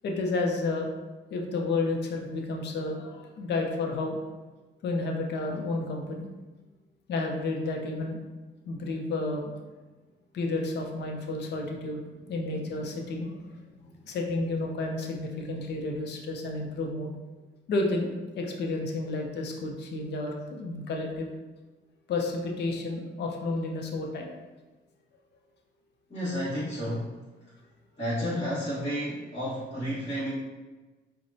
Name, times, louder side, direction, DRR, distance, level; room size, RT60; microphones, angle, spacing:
voice 1, 0.0-0.9 1.3-4.2 4.8-6.3 7.1-8.2 8.7-9.5 10.3-13.6 14.0-17.1 17.7-18.1 18.4-21.3 22.1-24.3, left 2 dB, 60° left, 1 dB, 0.6 m, -31 dB
voice 2, 26.1-27.2 28.0-30.3, equal, 30° left, -13 dB, 1.4 m, -31 dB
4.6 x 2.1 x 2.7 m, 1.2 s
cardioid pair, 90°, 20 cm